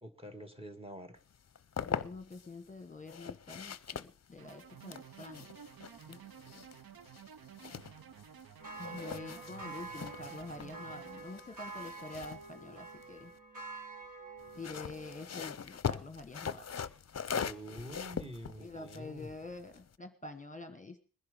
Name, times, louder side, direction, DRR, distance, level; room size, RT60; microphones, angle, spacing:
voice 1, 0.0-1.2 17.3-19.4, right 1 dB, 15° right, 9 dB, 1.8 m, -46 dB
sound 1, 1.3-2.5 3.1-8.5 8.7-13.4 14.4-20.0, left 7 dB, 45° left, 0.6 m, -42 dB
voice 2, 1.8-5.5 6.1-6.2 8.8-13.3 14.5-16.7 18.6-21.0, left 3 dB, 20° left, 8 dB, 1.3 m, -47 dB
sound 2, 4.4-11.2, right 9 dB, 90° right, 0.7 m, -53 dB
sound 3, 8.6-15.3, right 4 dB, 60° right, 3.7 m, -47 dB
20.5 x 10.5 x 5.1 m, 0.39 s
wide cardioid pair, 105°, 35 cm